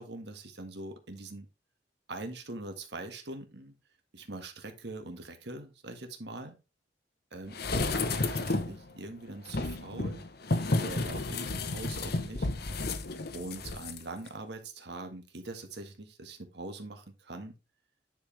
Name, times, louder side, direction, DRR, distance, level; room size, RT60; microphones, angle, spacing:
voice 1, 0.0-1.5 2.1-3.7 4.1-6.6 7.3-10.2 10.8-12.5 13.3-17.5, right 2 dB, 65° right, 5 dB, 1.7 m, -43 dB
sound 1, 7.5-8.8 9.5-14.0 14.3-14.4, left 2 dB, 60° left, 1.0 m, -32 dB
10.0 x 5.0 x 3.3 m, 0.28 s
head